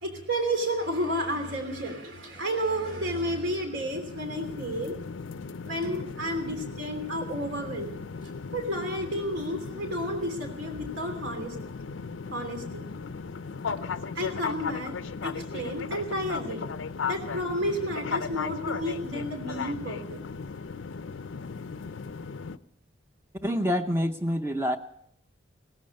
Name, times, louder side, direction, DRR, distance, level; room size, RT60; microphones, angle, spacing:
voice 1, 0.0-5.0 5.6-8.0 8.5-11.5 12.3-12.9 14.1-14.9 15.2-16.7 17.0-20.2, equal, 70° right, 5 dB, 3.2 m, -31 dB
sound 1, 3.7-22.6, left 5 dB, 80° left, 0.5 m, -37 dB
voice 2, 23.4-24.8, equal, 15° right, 7 dB, 0.6 m, -26 dB
16.5 x 14.0 x 5.4 m, 0.72 s
head